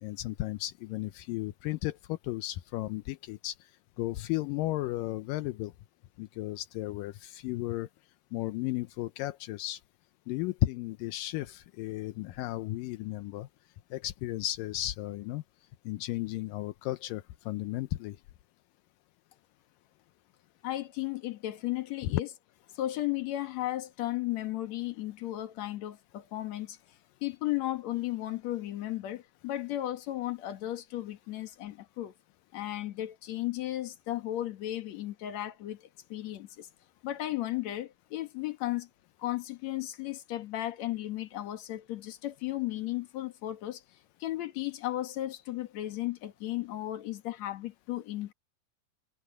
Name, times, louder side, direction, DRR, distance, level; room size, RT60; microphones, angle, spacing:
voice 1, 0.0-3.7 4.0-5.7 6.2-7.9 8.3-9.8 10.3-13.5 13.9-15.4 15.9-18.2, left 16 dB, 80° left, 2.0 m, -34 dB
voice 2, 20.6-22.3 22.7-26.8 27.2-32.1 32.5-36.7 37.0-38.9 39.2-43.8 44.2-48.3, left 15 dB, 55° left, 2.3 m, -35 dB
omnidirectional pair, 4.7 m